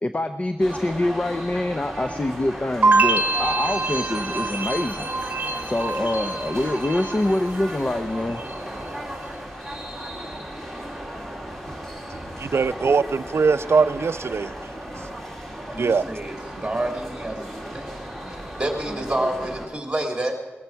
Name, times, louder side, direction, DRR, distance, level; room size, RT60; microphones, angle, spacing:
voice 1, 0.0-5.1 5.7-8.4, left 1 dB, 30° left, 0.7 m, -25 dB
sound 1, 0.6-19.7, equal, 10° left, 2.7 m, -35 dB
sound 2, 2.8-7.9 8.1-8.8, right 3 dB, 40° right, 1.3 m, -25 dB
voice 2, 12.4-14.5 15.8-16.0, right 5 dB, 65° right, 0.5 m, -21 dB
voice 3, 15.7-16.4 16.6-17.9 18.3-20.3, right 1 dB, 15° right, 2.8 m, -28 dB
19.5 x 14.5 x 4.6 m
wide cardioid pair, 90°, 5 cm